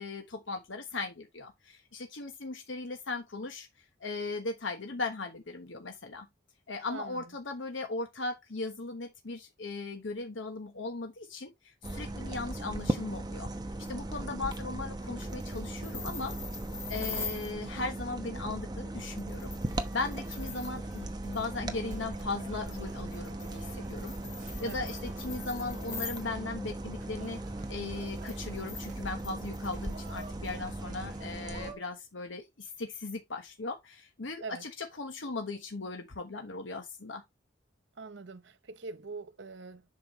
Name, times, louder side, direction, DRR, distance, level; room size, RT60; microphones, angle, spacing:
voice 1, 0.0-3.7 4.0-6.3 6.7-13.5 13.9-16.3 16.9-24.1 24.6-27.4 27.7-37.2, left 3 dB, 75° left, 1.2 m, -38 dB
voice 2, 6.9-7.2 17.0-17.3 24.7-24.9 34.4-34.6 38.0-39.8, right 4 dB, 65° right, 0.8 m, -43 dB
sound 1, 11.8-31.7, right 1 dB, 20° right, 0.9 m, -38 dB
sound 2, 15.3-17.5 19.2-21.0 21.3-21.5 22.6-26.2 27.9-30.5, left 4 dB, 15° left, 2.0 m, -43 dB
sound 3, 19.3-31.8, right 2 dB, 40° right, 3.4 m, -53 dB
7.7 x 5.9 x 3.1 m
head